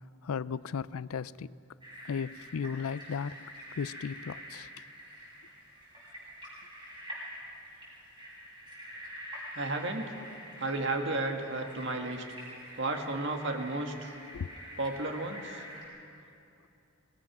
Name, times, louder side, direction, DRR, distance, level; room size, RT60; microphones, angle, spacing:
voice 1, 0.2-1.5 2.0-3.4 3.8-4.7 14.3-14.5, left 6 dB, 75° left, 0.4 m, -35 dB
sound 1, 1.8-15.8, equal, 20° right, 7.1 m, -47 dB
voice 2, 9.5-10.2 10.6-12.3 12.8-14.2 14.8-15.6, right 2 dB, 55° right, 1.8 m, -33 dB
26.0 x 19.0 x 6.1 m
head